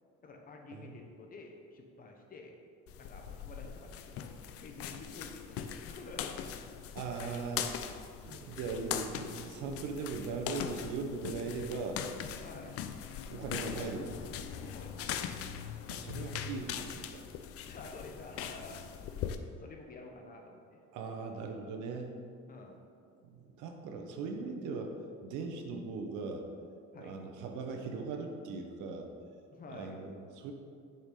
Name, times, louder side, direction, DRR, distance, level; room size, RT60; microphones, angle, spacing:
voice 1, 0.2-2.6 3.0-7.0 12.4-12.8 14.7-15.3 17.7-18.8 19.3-20.8 22.5-22.8 26.9-27.2 29.5-30.0, left 3 dB, 30° left, 2 dB, 0.9 m, -50 dB
sound 1, 2.9-19.4, left 9 dB, 50° left, 0.5 m, -41 dB
voice 2, 6.9-7.7 8.3-12.0 13.3-14.8 15.9-17.2 20.9-22.2 23.2-24.9 25.2-26.5 27.0-29.1 29.7-30.5, right 4 dB, 80° right, 4 dB, 1.1 m, -39 dB
8.4 x 7.1 x 3.9 m, 2.3 s
cardioid pair, 170°, 30 cm